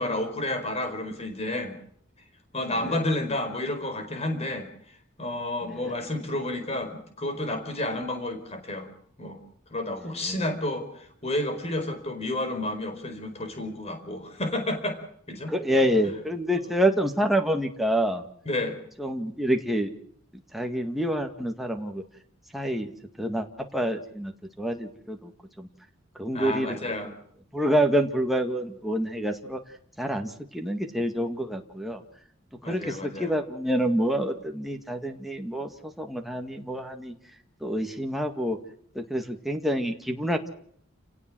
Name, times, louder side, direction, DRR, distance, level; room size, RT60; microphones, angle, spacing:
voice 1, 0.0-1.8 2.5-4.7 5.2-8.9 9.2-9.4 9.7-15.0 15.3-15.5 18.4-18.8 26.3-27.1 32.6-33.3, left 1 dB, 30° left, 6 dB, 4.8 m, -30 dB
voice 2, 5.6-5.9 9.9-10.0 10.3-10.4 15.5-18.2 19.0-19.9 20.5-22.0 22.5-22.9 23.2-25.3 25.6-25.7 26.2-26.8 27.5-29.6 30.0-32.0 32.6-37.1 37.6-38.6 39.0-40.5, equal, ahead, 3 dB, 2.0 m, -27 dB
29.0 x 18.0 x 6.3 m, 0.64 s
head